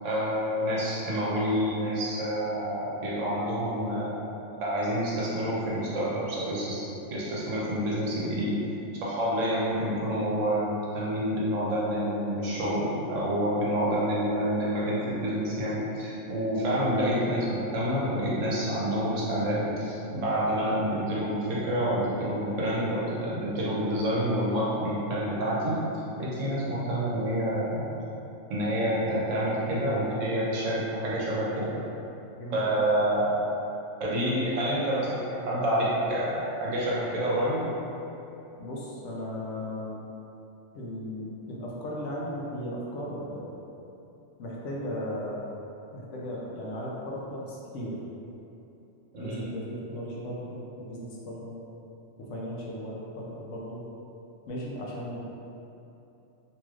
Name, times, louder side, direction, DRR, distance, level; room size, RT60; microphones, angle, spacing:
voice 1, 0.0-4.1 4.6-8.6 9.0-25.8 26.2-27.9 28.5-31.8 32.5-33.4 34.0-37.6 49.1-49.4, equal, 75° right, -6 dB, 1.0 m, -28 dB
voice 2, 38.6-40.0 40.7-43.5 44.4-45.4 45.9-48.0 49.2-51.6 52.2-53.8 54.5-55.2, equal, 70° left, -5 dB, 0.9 m, -36 dB
3.1 x 2.9 x 2.3 m, 2.9 s
omnidirectional pair, 1.4 m